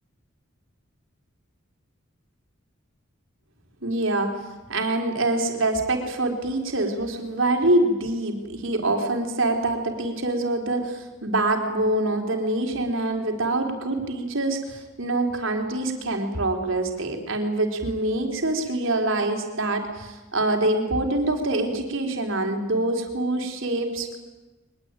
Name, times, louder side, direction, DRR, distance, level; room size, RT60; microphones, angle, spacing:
voice 1, 3.8-4.3 4.7-24.2, right 2 dB, 65° right, 4 dB, 4.4 m, -25 dB
23.0 x 21.5 x 9.2 m, 1.2 s
head